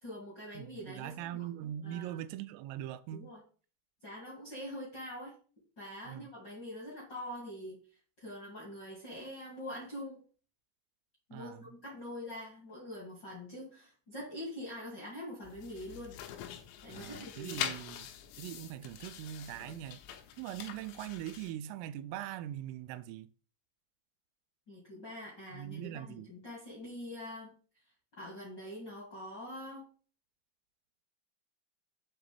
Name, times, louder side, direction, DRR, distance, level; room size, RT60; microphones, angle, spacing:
voice 1, 0.0-1.5 1.8-2.2 3.1-3.4 4.0-5.4 5.8-7.8 8.2-10.2 11.3-16.2 16.8-17.7 24.7-27.5 28.2-29.9, left 1 dB, 75° left, 1.0 m, -44 dB
voice 2, 0.6-3.3 6.1-6.3 11.3-11.6 16.9-18.1 18.4-20.0 20.4-23.3 25.5-26.3, right 12 dB, 85° right, 3.0 m, -42 dB
sound 1, 15.4-21.5, left 9 dB, 90° left, 3.6 m, -44 dB
8.0 x 3.8 x 6.7 m
omnidirectional pair, 6.0 m